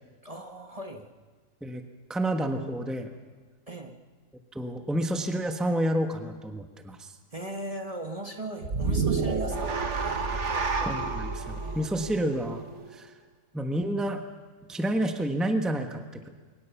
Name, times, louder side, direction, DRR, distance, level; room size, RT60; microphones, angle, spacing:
voice 1, 0.2-1.1 3.7-3.9 7.3-9.8 10.0-10.8 11.4-12.0, right 2 dB, 25° right, 3 dB, 1.5 m, -38 dB
voice 2, 2.1-3.1 4.5-7.1 10.8-12.6 12.9-13.1 13.5-14.2 14.7-16.3, right 1 dB, ahead, 5 dB, 1.2 m, -29 dB
sound 1, 8.6-13.0, right 4 dB, 60° right, 1.7 m, -30 dB
22.5 x 19.0 x 7.1 m, 1.4 s
omnidirectional pair, 1.4 m